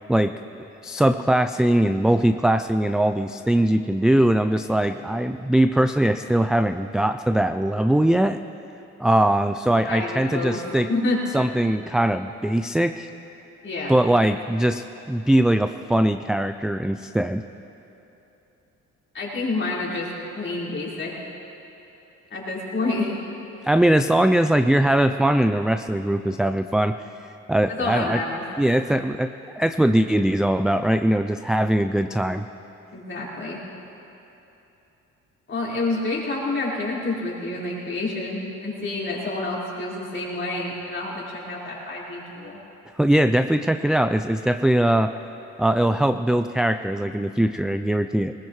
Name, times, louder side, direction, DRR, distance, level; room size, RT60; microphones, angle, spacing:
voice 1, 0.8-8.4 9.0-10.9 11.3-13.1 13.9-17.4 23.6-26.9 27.5-28.2 28.6-32.5 43.0-45.1 45.6-48.3, right 1 dB, ahead, 8 dB, 0.3 m, -21 dB
voice 2, 9.8-10.6 10.9-11.2 13.6-14.0 19.1-20.1 20.3-21.1 22.3-23.1 27.7-28.4 32.9-33.6 35.5-42.6, left 2 dB, 40° left, -6 dB, 4.6 m, -28 dB
20.0 x 19.0 x 3.2 m, 3.0 s
cardioid pair, 90°, 30 cm